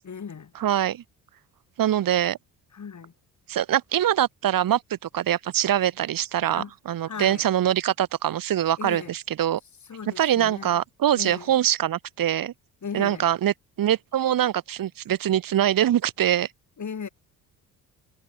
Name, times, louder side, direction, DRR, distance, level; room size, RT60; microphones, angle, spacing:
voice 1, 0.0-0.5 2.7-3.1 6.5-6.7 7.0-7.5 8.8-9.1 9.9-10.8 11.1-11.5 12.8-13.3 16.8-17.1, left 6 dB, 35° left, 3.0 m, -37 dB
voice 2, 0.6-1.0 1.8-2.4 3.5-9.6 10.2-12.5 12.9-16.5, right 11 dB, 45° right, 1.1 m, -23 dB
hypercardioid pair, 50°, 49 cm